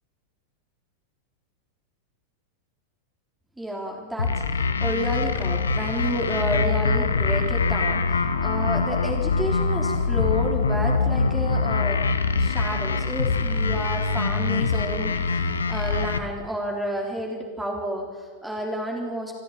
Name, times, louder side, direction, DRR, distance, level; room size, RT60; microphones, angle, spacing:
voice 1, 3.6-8.0 8.4-12.0 12.4-19.3, equal, 5° right, 0 dB, 3.5 m, -30 dB
sound 1, 4.2-16.2, left 4 dB, 70° left, 1.3 m, -24 dB
26.0 x 13.5 x 7.4 m, 1.5 s
figure-of-eight pair, 90°, 0 cm